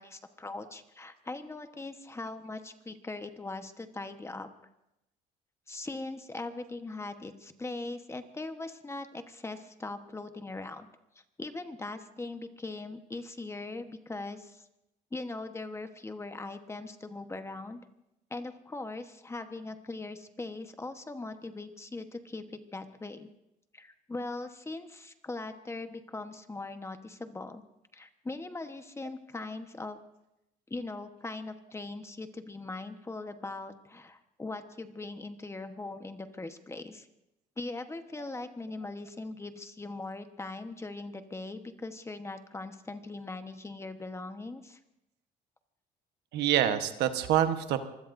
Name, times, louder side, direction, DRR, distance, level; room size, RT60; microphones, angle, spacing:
voice 1, 0.0-4.5 5.7-10.9 11.4-14.7 15.1-17.8 18.3-23.3 23.7-27.6 27.9-30.0 30.7-37.1 37.6-44.8, left 2 dB, 15° left, 8 dB, 1.2 m, -40 dB
voice 2, 46.3-47.8, right 11 dB, 85° right, 8 dB, 1.2 m, -26 dB
25.5 x 20.5 x 2.7 m, 0.87 s
cardioid pair, 110°, 17 cm